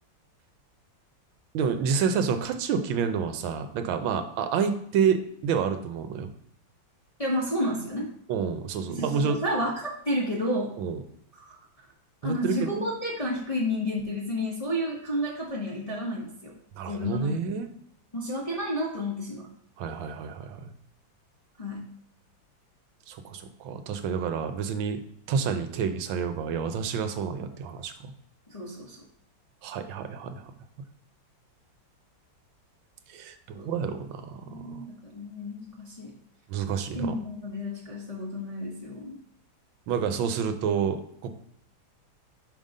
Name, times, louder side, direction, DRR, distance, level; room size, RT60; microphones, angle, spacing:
voice 1, 1.5-6.3 8.3-9.4 10.8-11.0 12.2-12.9 16.8-17.7 19.8-20.7 23.1-25.0 25.3-28.1 29.6-30.5 33.1-34.8 36.5-37.1 39.9-41.3, right 6 dB, 90° right, 7 dB, 1.5 m, -29 dB
voice 2, 7.2-8.1 9.0-10.7 11.5-11.6 12.2-16.5 16.9-17.4 18.1-19.5 21.6-21.9 28.5-29.0 33.6-33.7 34.4-36.1 36.9-39.2, left 1 dB, 35° left, -4 dB, 0.6 m, -31 dB
5.3 x 3.7 x 5.3 m, 0.70 s
omnidirectional pair, 2.1 m